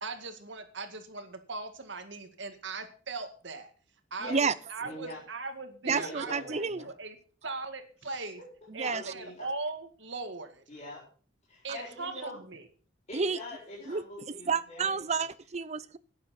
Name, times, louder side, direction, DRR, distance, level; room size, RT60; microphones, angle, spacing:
voice 1, 0.0-3.7 4.1-6.6 6.8-7.2 7.4-8.4 8.7-10.6 11.6-12.6, right 3 dB, 65° right, 7 dB, 2.1 m, -39 dB
voice 2, 4.8-5.2 5.8-6.9 8.2-9.5 10.7-11.0 11.5-12.4 13.1-15.2, left 1 dB, 35° left, -5 dB, 4.1 m, -44 dB
voice 3, 5.8-6.8 8.7-9.1 13.1-13.4 13.9-14.0 14.5-16.0, right 5 dB, 35° right, 17 dB, 0.6 m, -30 dB
12.0 x 9.9 x 5.9 m, 0.41 s
head